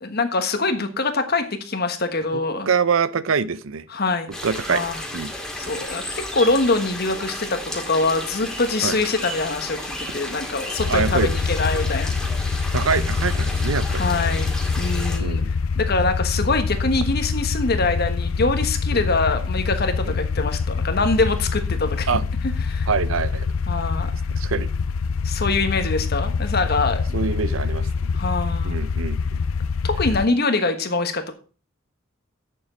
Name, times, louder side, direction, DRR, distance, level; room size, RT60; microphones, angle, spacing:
voice 1, 0.0-2.7 3.9-4.3 4.7-5.0 5.6-12.2 12.9-13.1 13.9-14.5 14.8-15.4 15.7-22.1 22.7-22.9 23.7-24.1 25.2-27.1 28.1-28.8 29.8-31.3, left 3 dB, 50° left, 1.4 m, -24 dB
voice 2, 2.7-3.9 4.4-4.8 5.1-5.3 8.8-9.0 10.8-11.3 12.7-14.1 15.2-15.5 18.9-19.0 20.1-20.2 22.1-22.2 22.9-23.5 24.4-24.7 27.1-27.9 28.6-29.4, right 5 dB, 75° right, 0.6 m, -24 dB
sound 1, 4.3-15.2, left 1 dB, 5° left, 2.2 m, -33 dB
sound 2, 10.8-30.3, left 5 dB, 80° left, 0.5 m, -25 dB
9.5 x 7.0 x 5.1 m
head